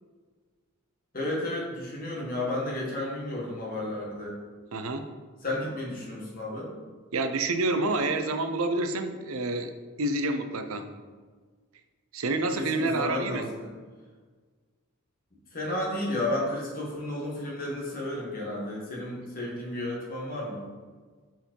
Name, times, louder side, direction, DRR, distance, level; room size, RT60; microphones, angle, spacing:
voice 1, 1.1-4.4 5.4-6.7 12.5-13.7 15.5-20.7, left 1 dB, 40° left, -4 dB, 1.7 m, -32 dB
voice 2, 4.7-5.1 7.1-9.7 10.0-10.9 12.1-13.5, right 2 dB, 75° right, 7 dB, 0.6 m, -28 dB
5.2 x 4.6 x 4.5 m, 1.5 s
head